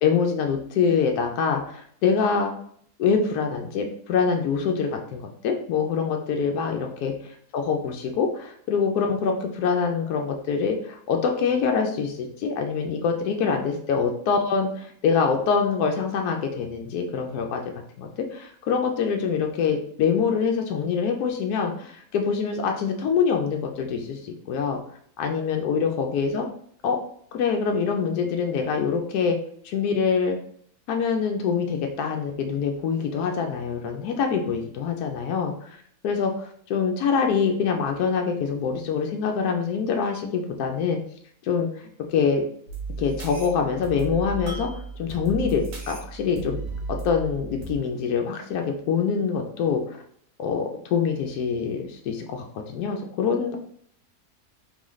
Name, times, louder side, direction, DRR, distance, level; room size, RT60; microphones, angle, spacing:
voice 1, 0.0-2.6 3.0-7.1 7.5-17.6 18.0-24.8 25.2-26.5 26.8-27.0 27.3-29.4 29.6-30.4 30.9-35.8 36.0-41.0 41.4-42.4 43.0-44.7 45.0-46.6 47.0-50.0 50.4-53.6, left 6 dB, 80° left, 3 dB, 1.1 m, -25 dB
sound 1, 42.7-47.7, right 3 dB, 65° right, 1.4 m, -34 dB
3.8 x 3.8 x 3.1 m, 0.63 s
omnidirectional pair, 1.7 m